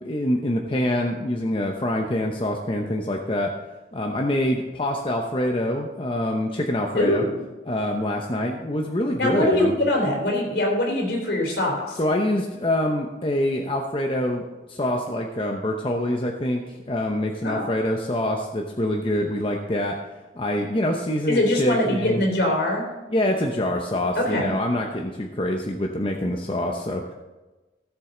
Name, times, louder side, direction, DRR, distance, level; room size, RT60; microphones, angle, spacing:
voice 1, 0.0-3.5 3.9-7.3 7.7-9.8 12.0-20.0 20.3-22.2 23.1-27.1, left 1 dB, 30° left, 2 dB, 0.8 m, -25 dB
voice 2, 7.0-7.4 9.2-12.0 17.4-17.6 21.3-22.8 24.2-24.5, left 1 dB, 70° left, 0 dB, 3.4 m, -22 dB
16.0 x 7.5 x 3.8 m, 1.1 s
head